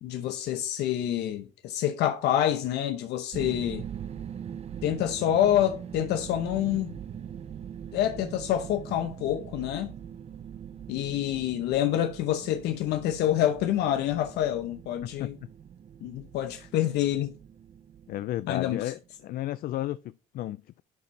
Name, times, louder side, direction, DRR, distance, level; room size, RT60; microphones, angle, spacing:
voice 1, 0.0-3.8 4.8-6.9 7.9-9.9 10.9-15.3 16.0-17.3 18.5-18.9, left 11 dB, 80° left, 0.8 m, -27 dB
sound 1, 3.3-19.2, right 8 dB, 40° right, 0.7 m, -42 dB
voice 2, 18.1-20.8, left 14 dB, 60° left, 0.4 m, -33 dB
11.0 x 4.2 x 3.2 m
cardioid pair, 110°, 17 cm